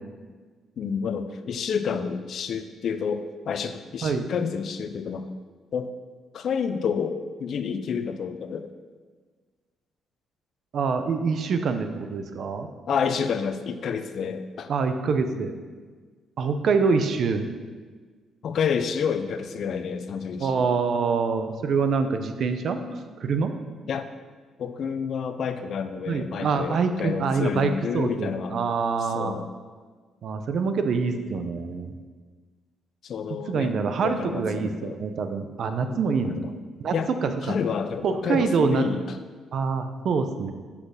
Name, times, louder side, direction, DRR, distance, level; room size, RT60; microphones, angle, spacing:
voice 1, 0.8-5.3 5.7-5.9 6.3-8.7 12.9-14.7 18.4-20.7 23.9-24.1 24.6-28.5 29.0-29.5 33.0-33.7 34.0-35.0 35.9-36.5 36.9-37.1 37.4-39.0, left 6 dB, 60° left, 9 dB, 0.6 m, -29 dB
voice 2, 10.7-12.7 14.7-15.5 16.4-17.5 20.4-23.5 26.1-29.4 30.2-31.9 33.5-36.4 36.8-36.9 37.2-37.5 38.0-38.8 39.5-40.5, right 5 dB, 60° right, 8 dB, 0.8 m, -25 dB
6.2 x 5.7 x 6.6 m, 1.5 s
cardioid pair, 90°, 0 cm